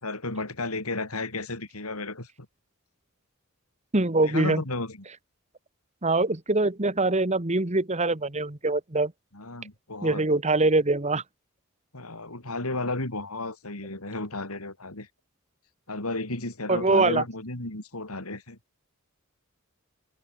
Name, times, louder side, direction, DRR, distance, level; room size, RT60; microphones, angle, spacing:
voice 1, 0.0-2.3 4.2-5.0 9.3-10.2 11.9-15.1 15.9-18.6, left 2 dB, 85° left, 4.7 m, -33 dB
voice 2, 3.9-4.6 6.0-9.1 10.0-11.2 16.7-17.2, right 2 dB, 30° right, 1.5 m, -23 dB
open air
head